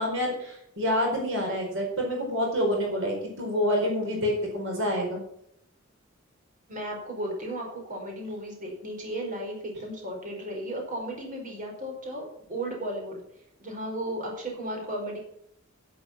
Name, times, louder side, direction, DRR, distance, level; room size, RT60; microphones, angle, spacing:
voice 1, 0.0-5.2, equal, 65° right, 0 dB, 4.5 m, -27 dB
voice 2, 6.7-13.2 13.6-15.2, right 1 dB, 40° right, 0 dB, 4.9 m, -35 dB
11.0 x 11.0 x 6.0 m, 0.74 s
head